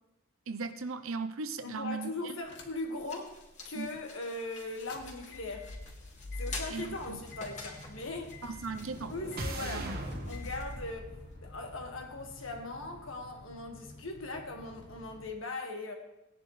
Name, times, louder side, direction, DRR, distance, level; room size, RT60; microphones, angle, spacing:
voice 1, 0.5-2.4 3.8-3.9 6.7-7.2 8.4-9.1 9.6-10.0, right 4 dB, 80° right, 9 dB, 0.8 m, -38 dB
voice 2, 1.6-5.7 6.4-8.4 9.1-9.9 10.3-15.9, left 2 dB, 75° left, 3 dB, 1.8 m, -40 dB
sound 1, 2.4-11.4, left 3 dB, 35° left, 2.6 m, -49 dB
sound 2, 2.5-3.0 3.4-3.5 4.7-15.3, left 2 dB, 60° left, 1.5 m, -47 dB
sound 3, 8.2-12.4, right 1 dB, 50° right, 1.3 m, -41 dB
18.0 x 10.5 x 3.3 m, 0.96 s
head